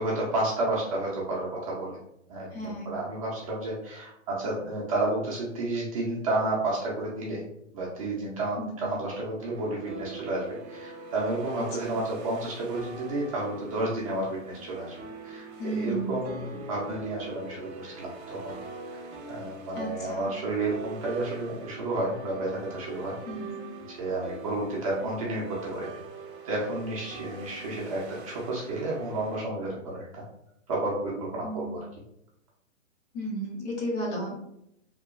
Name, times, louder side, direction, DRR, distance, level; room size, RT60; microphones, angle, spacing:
voice 1, 0.0-2.0 2.3-7.4 7.7-18.6 18.9-19.0 19.3-23.2 23.9-26.0 26.4-30.2 30.7-31.8, right 2 dB, 30° right, -5 dB, 0.4 m, -31 dB
voice 2, 2.5-3.0 8.6-8.8 11.9-12.0 15.6-16.2 19.7-20.4 23.3-23.6 31.4-31.8 33.1-34.4, right 1 dB, 30° left, -1 dB, 0.7 m, -33 dB
sound 1, 9.4-29.4, right 4 dB, 65° right, 0.7 m, -43 dB
2.9 x 2.2 x 2.4 m, 0.78 s
hypercardioid pair, 145°, 38 cm